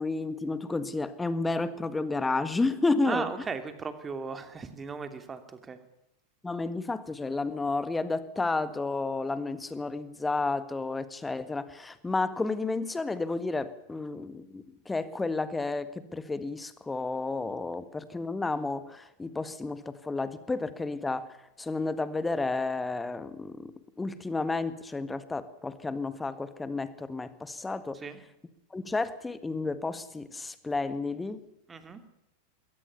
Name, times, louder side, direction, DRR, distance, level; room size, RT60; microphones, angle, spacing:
voice 1, 0.0-3.3 6.4-28.0 28.7-31.4, left 3 dB, 10° left, 14 dB, 1.7 m, -31 dB
voice 2, 3.0-5.8 27.9-28.2 31.7-32.0, right 5 dB, 15° right, 9 dB, 2.7 m, -36 dB
22.0 x 18.0 x 7.0 m, 0.84 s
figure-of-eight pair, 90°, 0 cm